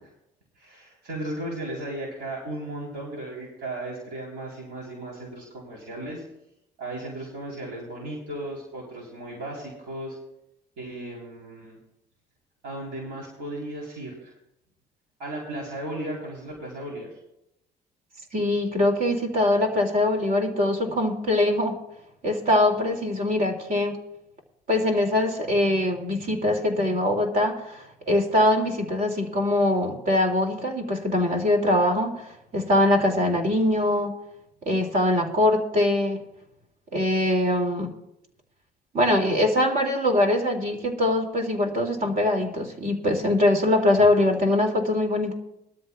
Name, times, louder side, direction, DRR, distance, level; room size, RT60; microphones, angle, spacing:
voice 1, 0.6-6.2 6.8-10.2 10.8-11.8 12.6-14.3 15.2-17.1, right 1 dB, 90° right, -2 dB, 3.5 m, -35 dB
voice 2, 18.3-21.8 22.2-24.0 24.7-32.3 32.5-34.1 34.7-36.2 36.9-37.9 38.9-45.3, left 1 dB, 55° right, 2 dB, 2.5 m, -22 dB
20.5 x 13.0 x 2.3 m, 0.86 s
cardioid pair, 110°, 17 cm